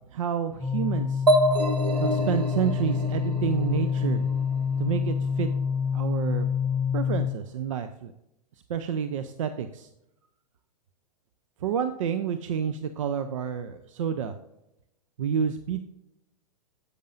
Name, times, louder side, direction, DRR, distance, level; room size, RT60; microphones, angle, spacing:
voice 1, 0.1-1.2 2.0-4.2 4.8-5.5 5.9-6.5 6.9-8.1 8.7-9.9 11.6-14.3 15.2-15.8, right 8 dB, 55° right, 9 dB, 0.6 m, -29 dB
sound 1, 0.6-7.3, left 7 dB, 5° left, 0.5 m, -27 dB
sound 2, 1.3-4.9, right 1 dB, 85° right, 0.8 m, -27 dB
10.0 x 8.1 x 2.5 m, 0.86 s
figure-of-eight pair, 105°, 20 cm